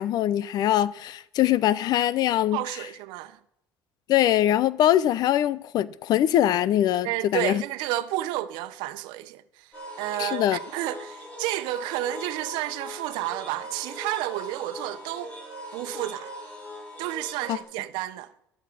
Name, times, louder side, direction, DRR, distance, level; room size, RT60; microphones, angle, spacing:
voice 1, 0.0-2.6 4.1-7.6 10.2-10.6 17.5-17.6, left 12 dB, 60° left, 0.7 m, -22 dB
voice 2, 2.5-3.4 7.0-9.7 10.0-15.3 15.7-16.3 17.0-18.3, right 15 dB, 80° right, 1.0 m, -31 dB
sound 1, 9.7-17.6, equal, 15° left, 5.8 m, -40 dB
13.0 x 6.6 x 9.6 m
supercardioid pair, 100°, 8 cm